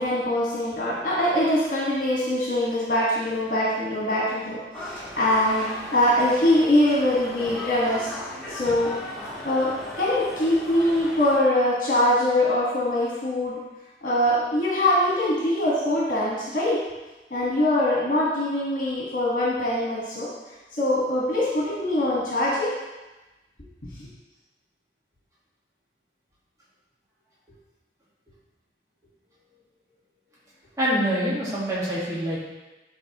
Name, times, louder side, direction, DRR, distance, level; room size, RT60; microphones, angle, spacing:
voice 1, 0.0-8.1 8.5-13.6 14.0-16.8 17.3-20.3 20.7-22.7, left 1 dB, 50° left, -6 dB, 1.6 m, -23 dB
sound 1, 4.7-11.4, left 1 dB, 5° left, 1.7 m, -37 dB
voice 2, 30.8-32.4, equal, 20° right, -8 dB, 1.7 m, -25 dB
12.5 x 4.3 x 3.0 m, 1.1 s
head